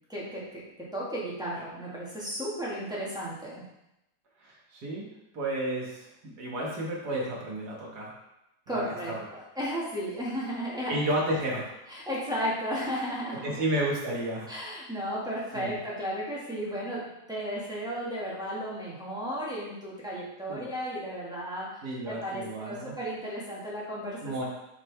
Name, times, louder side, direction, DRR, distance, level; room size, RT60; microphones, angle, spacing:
voice 1, 0.1-3.6 8.7-11.0 11.9-13.6 14.5-21.7 22.0-24.4, equal, ahead, -7 dB, 1.3 m, -34 dB
voice 2, 4.4-5.1 5.3-8.1 8.7-8.9 10.9-11.7 13.4-14.5 15.5-15.8 20.5-20.7 21.8-22.9 24.2-24.4, right 1 dB, 50° right, -3 dB, 1.8 m, -32 dB
7.6 x 3.8 x 3.4 m, 0.88 s
omnidirectional pair, 2.4 m